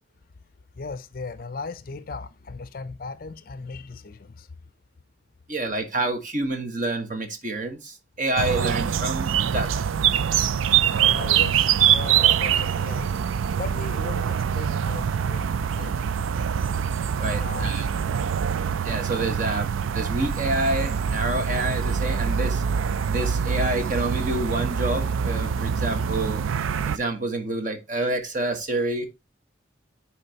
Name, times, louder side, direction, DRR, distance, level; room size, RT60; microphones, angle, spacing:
voice 1, 0.7-4.5 11.0-13.1 13.6-16.0 17.4-17.8 18.1-18.4, left 4 dB, 45° left, 0.5 m, -37 dB
voice 2, 5.5-9.8 17.2-17.9 18.8-22.6 23.1-26.4 26.8-29.1, right 2 dB, 40° right, 1.3 m, -28 dB
sound 1, 8.4-27.0, right 8 dB, 85° right, 0.4 m, -24 dB
9.9 x 4.6 x 2.8 m
head